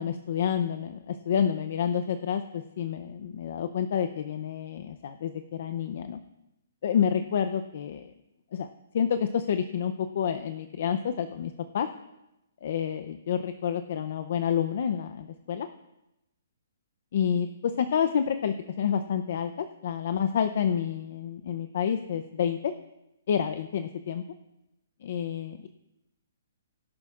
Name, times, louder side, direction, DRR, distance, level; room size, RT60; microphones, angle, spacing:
voice 1, 0.0-6.2 6.8-8.1 8.5-8.7 8.9-11.9 12.6-15.7 17.1-22.7 23.3-24.2 25.0-25.7, left 8 dB, 50° left, 10 dB, 0.5 m, -29 dB
17.0 x 11.5 x 2.4 m, 0.92 s
hypercardioid pair, 170°, 0 cm